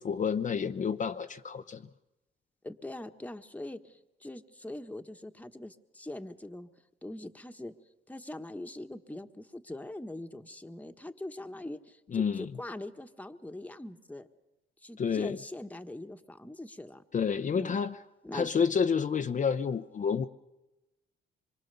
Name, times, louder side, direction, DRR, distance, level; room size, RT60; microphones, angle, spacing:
voice 1, 0.0-1.8 12.1-12.5 15.0-15.4 17.1-18.0 18.3-20.3, left 6 dB, 40° left, 6 dB, 0.8 m, -29 dB
voice 2, 2.6-6.7 7.0-7.7 8.1-14.3 14.8-17.0 17.5-17.8 18.2-18.5, left 1 dB, 5° left, 7 dB, 1.4 m, -42 dB
25.5 x 23.5 x 6.9 m, 1.0 s
cardioid pair, 90°, 20 cm